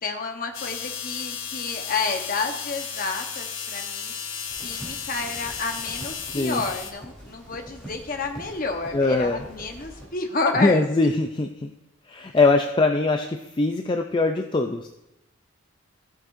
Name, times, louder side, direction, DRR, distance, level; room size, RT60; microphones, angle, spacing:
voice 1, 0.0-4.1 4.6-10.8, left 3 dB, 40° left, 4 dB, 1.0 m, -30 dB
sound 1, 0.5-6.9, left 7 dB, 65° left, 1.0 m, -34 dB
sound 2, 4.5-10.1, equal, 5° left, 3.2 m, -44 dB
voice 2, 8.9-9.4 10.6-11.7 12.1-14.9, left 3 dB, 20° left, 4 dB, 0.4 m, -22 dB
15.0 x 7.8 x 2.6 m, 0.90 s
head